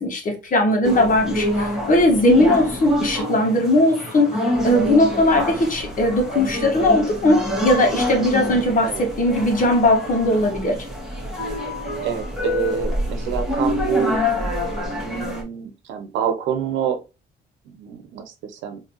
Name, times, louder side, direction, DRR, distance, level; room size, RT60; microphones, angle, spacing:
voice 1, 0.0-10.8, left 1 dB, 45° left, 1.5 m, -19 dB
sound 1, 0.8-15.4, left 1 dB, ahead, 1.9 m, -26 dB
voice 2, 12.0-14.2 14.9-17.0 17.6-18.8, right 8 dB, 85° right, 0.9 m, -27 dB
3.9 x 2.9 x 3.0 m
cardioid pair, 85°, 19 cm